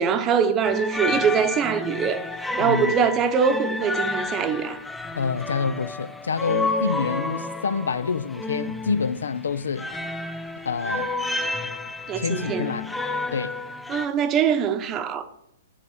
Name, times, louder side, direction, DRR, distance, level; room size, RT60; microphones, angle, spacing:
voice 1, 0.0-2.2 2.6-4.8 12.1-12.7 13.9-15.2, right 7 dB, 25° right, 0.8 m, -23 dB
sound 1, 0.6-14.1, left 2 dB, 5° left, 0.5 m, -30 dB
voice 2, 2.6-2.9 5.1-9.9 10.7-11.1 12.2-13.0 13.3-13.5, left 5 dB, 90° left, 0.5 m, -27 dB
11.0 x 3.6 x 6.3 m
hypercardioid pair, 145°, 0 cm